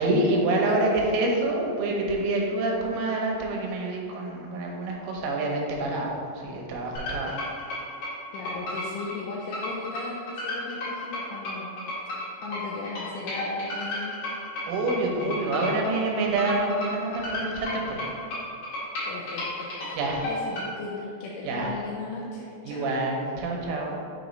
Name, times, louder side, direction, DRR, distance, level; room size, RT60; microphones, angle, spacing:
voice 1, 0.0-7.9 14.7-18.1 19.9-20.3 21.4-21.8 22.6-24.0, right 2 dB, 85° right, -1 dB, 3.4 m, -27 dB
voice 2, 0.6-1.1 8.3-11.7 12.0-12.1 12.4-14.2 19.1-22.9, left 3 dB, 80° left, -3 dB, 2.6 m, -37 dB
sound 1, 7.0-20.7, left 1 dB, 60° left, 2.3 m, -33 dB
7.3 x 3.0 x 5.1 m, 2.4 s
omnidirectional pair, 5.6 m